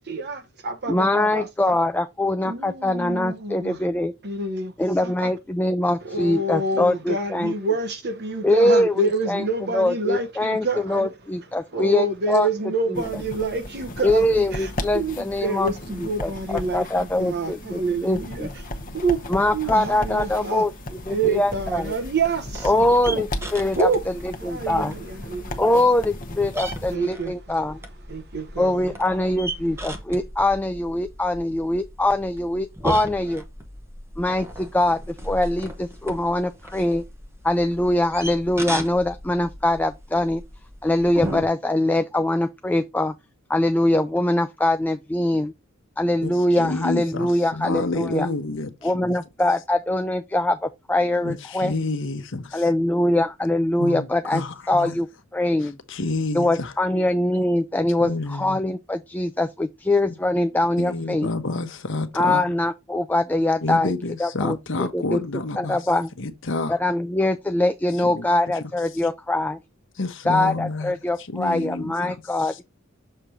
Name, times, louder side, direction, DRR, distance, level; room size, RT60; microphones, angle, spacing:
voice 1, 0.1-1.7 2.4-3.8 4.2-4.7 5.0-5.3 6.0-11.1 11.7-20.6 21.1-23.2 23.8-24.0 24.5-24.9 25.3-25.4 26.9-27.6 28.1-29.0, right 3 dB, 50° right, 1.0 m, -27 dB
voice 2, 0.9-4.1 4.8-7.5 8.4-9.4 9.7-12.5 12.9-13.0 14.0-15.7 16.0-18.5 19.3-21.9 22.6-23.9 24.7-24.9 25.6-27.8 28.6-33.4 34.2-37.0 37.4-40.4 40.8-43.1 43.5-45.5 46.0-48.3 48.8-51.7 52.5-55.1 55.3-55.8 56.3-61.3 62.2-63.9 64.2-65.2 65.6-66.1 66.7-69.6 70.3-72.6, left 1 dB, 10° left, 0.3 m, -23 dB
sound 1, 12.9-27.0, left 1 dB, 40° left, 0.9 m, -36 dB
sound 2, 21.5-41.5, right 1 dB, 10° right, 0.9 m, -36 dB
voice 3, 46.2-49.1 51.2-52.7 53.8-55.0 55.6-56.7 58.0-58.6 60.8-62.4 63.6-65.9 66.2-66.8 68.0-68.6 68.9-69.0 70.0-72.6, left 3 dB, 65° left, 0.9 m, -29 dB
6.7 x 2.9 x 4.9 m
head